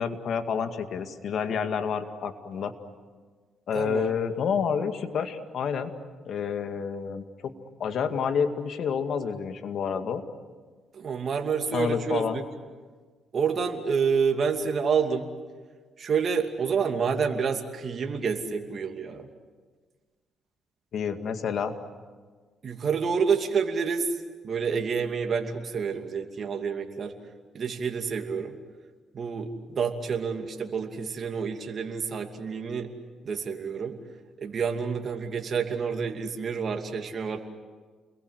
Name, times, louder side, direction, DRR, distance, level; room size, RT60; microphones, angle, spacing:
voice 1, 0.0-2.7 3.7-5.9 6.3-7.5 7.8-10.2 11.7-12.4 20.9-21.8, left 6 dB, 65° left, 7 dB, 2.2 m, -29 dB
voice 2, 3.7-4.1 10.9-12.4 13.3-15.3 16.0-19.3 22.6-24.1 24.4-27.1 27.5-28.6 29.1-32.9 33.2-34.0 34.4-37.4, right 6 dB, 50° right, 3 dB, 2.6 m, -28 dB
30.0 x 22.0 x 8.2 m, 1.4 s
cardioid pair, 90°, 0 cm